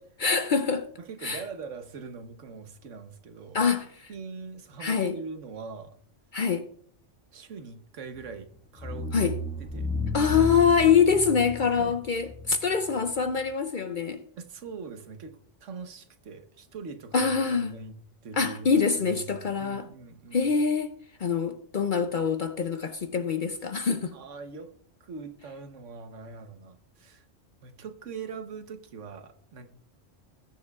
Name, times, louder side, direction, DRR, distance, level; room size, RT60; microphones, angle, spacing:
voice 1, 0.2-0.9 1.2-1.4 3.5-4.1 4.8-5.2 6.3-6.7 9.1-9.4 10.1-14.2 17.1-17.7 18.4-19.9 20.3-20.9 21.2-24.1, left 6 dB, 55° left, 0.6 m, -25 dB
voice 2, 1.0-3.7 4.1-6.0 7.3-9.9 11.1-11.2 11.7-11.9 14.4-18.0 18.2-18.7 19.0-20.5 24.1-24.7 25.0-27.3 27.6-29.7, right 5 dB, 80° right, 1.3 m, -42 dB
sound 1, 8.2-8.4 8.8-13.4, left 2 dB, 5° right, 1.5 m, -33 dB
20.0 x 7.6 x 2.4 m
omnidirectional pair, 1.3 m